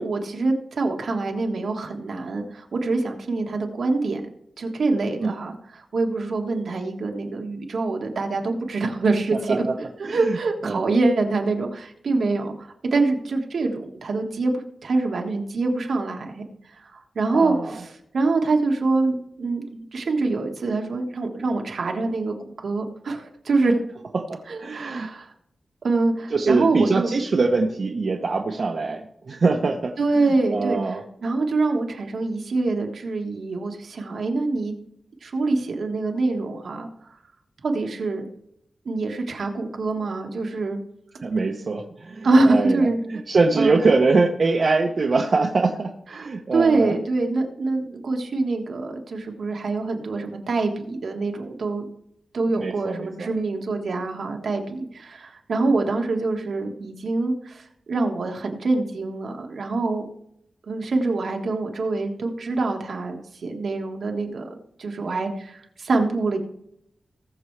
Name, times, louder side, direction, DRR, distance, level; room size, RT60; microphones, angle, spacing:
voice 1, 0.0-4.2 4.6-9.6 10.0-16.4 16.7-22.3 22.6-23.8 24.5-25.3 25.8-27.1 30.0-30.8 31.2-34.7 35.2-36.9 37.6-38.2 38.8-40.8 42.2-43.0 43.5-43.8 46.1-51.8 52.3-60.1 60.7-64.5 64.8-66.4, right 3 dB, 75° right, 2 dB, 1.6 m, -25 dB
voice 2, 9.3-9.8 10.0-10.4 10.6-10.8 17.3-17.8 24.1-25.1 26.3-31.0 41.2-46.9 52.6-53.3, right 3 dB, 50° right, 2 dB, 0.9 m, -23 dB
19.5 x 6.9 x 3.3 m, 0.78 s
wide cardioid pair, 155°, 0 cm